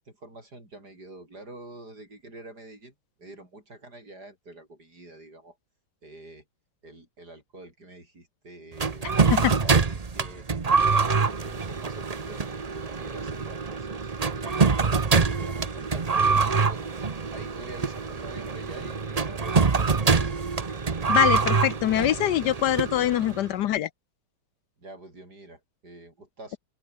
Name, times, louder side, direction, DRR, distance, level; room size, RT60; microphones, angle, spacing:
voice 1, 0.0-2.9 3.2-5.6 6.0-6.4 6.8-9.3 9.6-10.5 10.8-14.6 15.1-16.9 17.3-19.8 20.0-20.4 24.8-26.6, right 2 dB, 60° right, 8.1 m, -46 dB
sound 1, 8.8-23.5, right 4 dB, 30° right, 0.8 m, -25 dB
voice 2, 21.1-23.9, left 12 dB, 75° left, 1.3 m, -24 dB
open air
omnidirectional pair, 1.9 m